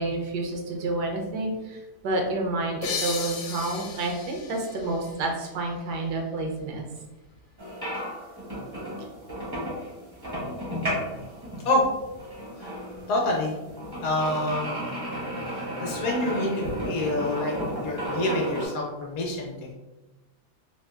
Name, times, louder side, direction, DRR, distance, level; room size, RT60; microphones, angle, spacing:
voice 1, 0.0-6.8, right 2 dB, 80° right, 1 dB, 1.2 m, -29 dB
sound 1, 2.8-6.2, left 5 dB, 90° left, 1.2 m, -35 dB
sound 2, 7.6-18.7, equal, 30° right, 0.4 m, -33 dB
voice 2, 13.1-13.5 14.0-14.8 15.8-17.5 17.8-19.7, left 1 dB, 65° left, -1 dB, 1.0 m, -27 dB
3.6 x 2.4 x 2.3 m, 1.1 s
omnidirectional pair, 1.8 m